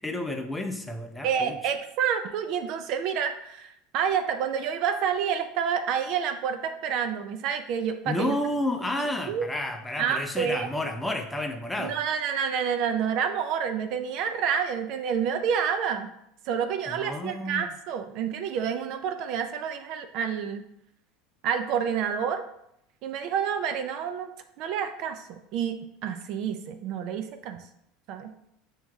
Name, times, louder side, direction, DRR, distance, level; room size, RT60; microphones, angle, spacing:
voice 1, 0.0-1.7 8.1-12.0 16.9-17.7, left 1 dB, 10° left, 5 dB, 0.5 m, -31 dB
voice 2, 1.2-8.4 9.3-9.5 10.0-10.7 11.8-16.1 16.5-20.6 21.4-22.5 23.0-27.6 28.1-28.5, right 7 dB, 60° right, 8 dB, 0.4 m, -29 dB
7.1 x 2.8 x 2.3 m, 0.78 s
supercardioid pair, 105°, 0 cm